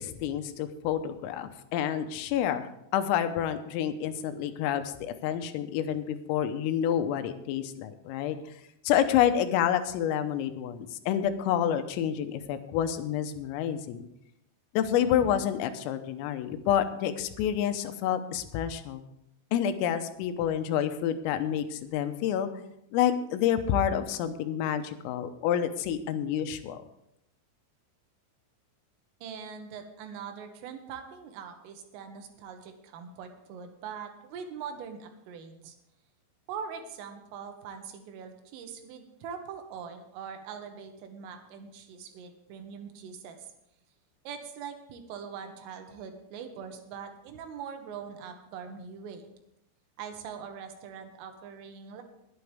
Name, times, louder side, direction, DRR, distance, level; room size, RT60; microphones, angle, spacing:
voice 1, 0.0-8.4 8.9-14.1 14.8-19.0 19.5-22.5 22.9-26.8, left 10 dB, 85° left, 9 dB, 3.6 m, -28 dB
voice 2, 29.2-35.8 36.5-43.5 44.3-49.2 50.0-52.0, right 7 dB, 80° right, 5 dB, 3.9 m, -42 dB
21.0 x 9.0 x 3.5 m, 0.80 s
omnidirectional pair, 5.8 m